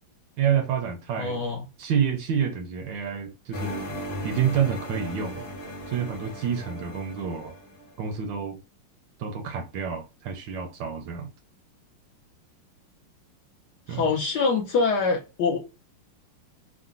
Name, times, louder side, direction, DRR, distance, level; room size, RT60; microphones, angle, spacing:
voice 1, 0.4-1.4 1.8-3.9 4.2-5.4 5.9-7.5 8.0-8.6 9.2-11.3 13.9-14.0, right 8 dB, 75° right, 1.2 m, -28 dB
voice 2, 1.2-1.6 13.9-15.6, left 4 dB, 70° left, 1.1 m, -24 dB
sound 1, 3.5-7.9, left 1 dB, 35° left, 1.2 m, -37 dB
3.8 x 2.2 x 2.5 m
omnidirectional pair, 2.3 m